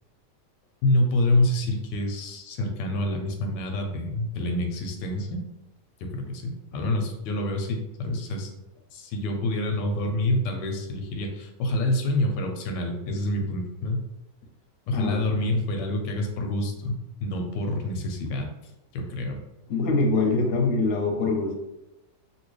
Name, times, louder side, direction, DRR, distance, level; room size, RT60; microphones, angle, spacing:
voice 1, 0.8-5.4 6.0-8.5 8.9-14.0 14.9-18.5 18.9-19.4, left 1 dB, 90° left, 3 dB, 1.3 m, -27 dB
voice 2, 14.9-15.2 19.7-21.6, left 3 dB, 60° left, 2 dB, 0.9 m, -24 dB
2.9 x 2.9 x 3.1 m, 0.93 s
omnidirectional pair, 1.8 m